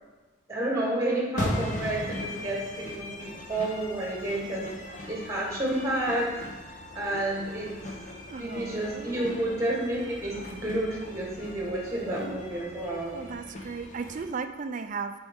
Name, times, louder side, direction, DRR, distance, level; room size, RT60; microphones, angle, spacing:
voice 1, 0.5-4.7 5.1-6.3 6.9-7.7 8.2-13.2, right 1 dB, 15° right, -2 dB, 1.3 m, -30 dB
sound 1, 1.4-14.3, left 1 dB, 35° left, 0.8 m, -39 dB
voice 2, 8.3-9.3 13.1-15.1, right 5 dB, 40° right, 9 dB, 0.3 m, -36 dB
7.9 x 4.3 x 3.6 m, 1.3 s
head